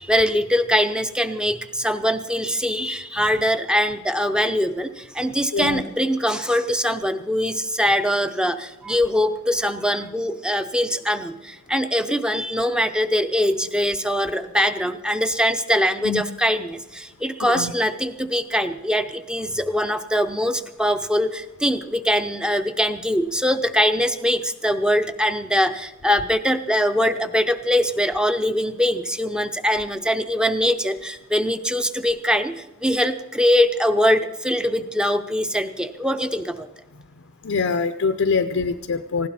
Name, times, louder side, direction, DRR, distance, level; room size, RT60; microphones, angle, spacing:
voice 1, 0.0-36.7, equal, 5° right, 10 dB, 0.7 m, -22 dB
voice 2, 5.5-5.8 16.0-16.2 17.5-17.7 37.4-39.3, left 4 dB, 65° left, 9 dB, 0.6 m, -23 dB
19.0 x 16.0 x 4.3 m, 0.96 s
head